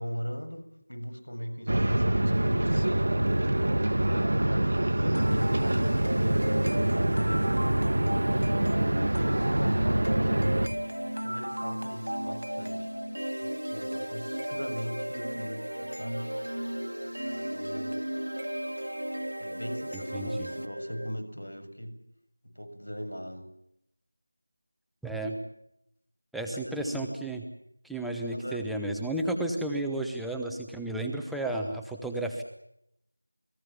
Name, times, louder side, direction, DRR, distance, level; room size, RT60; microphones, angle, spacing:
voice 1, 0.0-3.1 3.6-7.5 8.3-10.6 11.2-12.9 13.4-16.4 17.3-18.0 19.4-22.0 22.4-23.5 26.5-27.0 28.3-28.7, equal, 80° left, 7 dB, 7.1 m, -39 dB
sound 1, 1.7-10.7, right 1 dB, 45° right, 1.5 m, -25 dB
sound 2, 5.1-21.1, equal, 75° right, 2.3 m, -35 dB
voice 2, 19.9-20.5 25.0-25.4 26.3-27.4 27.8-32.4, right 1 dB, ahead, 1 dB, 1.0 m, -32 dB
29.0 x 20.0 x 7.2 m, 0.77 s
figure-of-eight pair, 175°, 0 cm